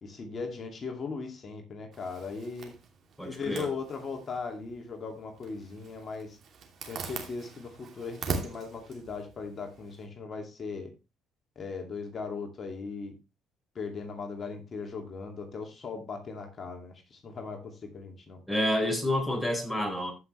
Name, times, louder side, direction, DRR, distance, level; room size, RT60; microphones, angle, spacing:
voice 1, 0.0-2.7 3.3-6.4 6.9-10.9 11.6-13.1 13.7-18.4, left 4 dB, 45° left, 2.4 m, -38 dB
Zipper (clothing), 1.9-10.1, right 5 dB, 55° right, 2.7 m, -42 dB
voice 2, 3.2-3.7 18.5-20.1, left 1 dB, 5° left, 4.2 m, -28 dB
14.5 x 5.9 x 3.2 m
supercardioid pair, 80°, 0 cm